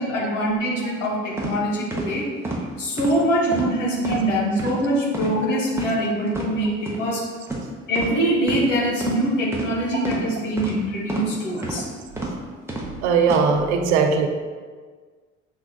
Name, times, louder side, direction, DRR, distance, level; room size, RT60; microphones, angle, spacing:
voice 1, 0.0-2.3 2.8-7.2 7.9-11.9, equal, 75° left, -3 dB, 1.1 m, -23 dB
sound 1, 1.4-1.5 1.9-2.1 2.4-2.6 3.0-3.1 3.5-3.7 4.0-4.2 4.6-4.8 5.1-5.3 5.7-5.9 6.3-6.5 6.8-7.0 7.5-7.6 7.9-8.1 8.5-8.6 9.0-9.2 9.5-9.7 10.0-10.2 10.6-10.7 11.1-11.3 11.6-11.8 12.2-12.3 12.7-12.9 13.2-13.4, right 2 dB, 5° right, 0.9 m, -29 dB
voice 2, 13.0-14.3, right 5 dB, 65° right, 5 dB, 0.6 m, -19 dB
6.3 x 3.4 x 2.3 m, 1.5 s
figure-of-eight pair, 55°, 38 cm